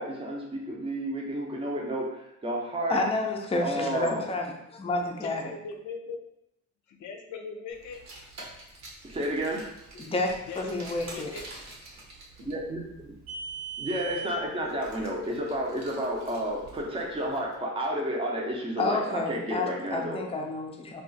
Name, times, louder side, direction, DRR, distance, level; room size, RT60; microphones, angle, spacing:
voice 1, 0.0-3.0 3.6-4.2 9.0-9.6 12.5-13.1 13.8-20.2, right 1 dB, 20° right, -1 dB, 0.6 m, -31 dB
voice 2, 2.9-5.4 9.9-11.3 18.8-21.0, left 2 dB, 20° left, 1 dB, 0.5 m, -30 dB
voice 3, 5.2-6.2 6.9-8.3 10.5-11.5, left 4 dB, 75° left, 3 dB, 0.6 m, -40 dB
Car, 7.9-17.4, right 4 dB, 60° right, 0.9 m, -43 dB
2.4 x 2.4 x 3.9 m, 0.83 s
cardioid pair, 90°, 30 cm